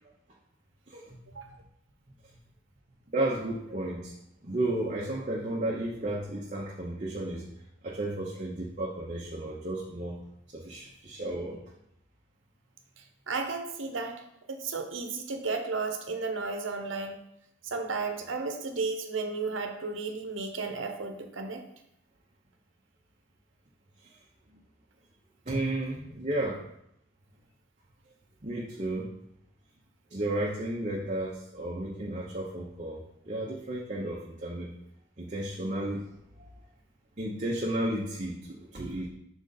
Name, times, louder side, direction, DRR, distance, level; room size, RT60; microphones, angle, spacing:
voice 1, 0.9-1.2 3.1-4.1 4.4-7.4 7.8-10.2 10.5-11.6 24.0-24.1 25.5-26.6 28.4-29.1 30.1-33.0 33.3-34.7 35.2-36.1 36.4-36.5 37.2-39.1, right 1 dB, 35° right, -4 dB, 0.8 m, -33 dB
voice 2, 13.0-14.2 14.5-17.2 17.6-21.6, right 4 dB, 80° right, 5 dB, 0.8 m, -33 dB
6.2 x 4.0 x 3.9 m, 0.77 s
head